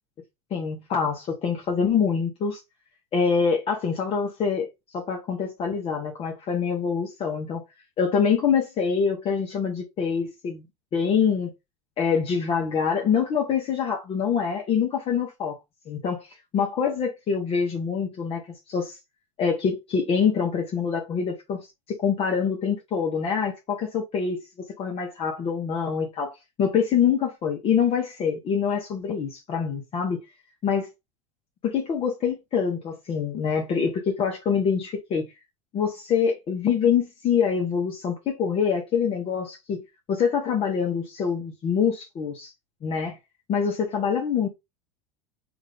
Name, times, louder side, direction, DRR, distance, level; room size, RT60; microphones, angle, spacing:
voice 1, 0.5-2.6 3.1-4.7 4.9-7.6 8.0-10.6 10.9-11.5 12.0-15.6 15.9-16.3 16.5-19.0 19.4-21.7 22.0-24.4 24.8-30.2 30.6-30.9 31.6-35.3 35.7-39.8 40.1-42.5 42.8-43.2 43.5-44.5, left 6 dB, 35° left, 0.9 m, -25 dB
3.5 x 2.5 x 3.4 m
supercardioid pair, 115°, 17 cm